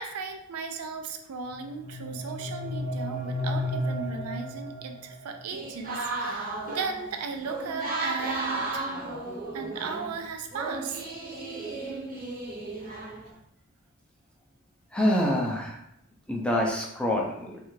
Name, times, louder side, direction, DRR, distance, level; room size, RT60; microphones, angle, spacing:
voice 1, 0.0-8.9 9.5-11.0, right 4 dB, 90° right, 5 dB, 0.4 m, -36 dB
sound 1, 1.5-5.5, left 1 dB, 35° left, 0.7 m, -33 dB
sound 2, 5.5-10.2 10.5-13.3, right 3 dB, 40° right, 0.7 m, -34 dB
voice 2, 14.9-15.8 16.3-17.6, left 1 dB, 5° left, -2 dB, 0.5 m, -26 dB
3.2 x 2.4 x 3.1 m, 0.77 s
head